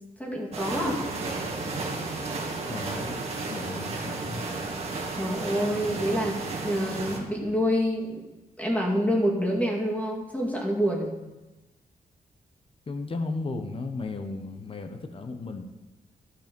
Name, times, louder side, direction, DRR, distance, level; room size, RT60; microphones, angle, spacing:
voice 1, 0.2-1.0 5.2-8.2 8.6-11.1, equal, 10° left, -2 dB, 2.2 m, -27 dB
sound 1, 0.5-7.2, right 3 dB, 45° right, 2.0 m, -33 dB
voice 2, 2.7-3.2 3.5-4.4 12.9-15.6, left 3 dB, 40° left, 7 dB, 1.0 m, -35 dB
13.0 x 5.6 x 5.3 m, 1.1 s
wide cardioid pair, 115°, 15 cm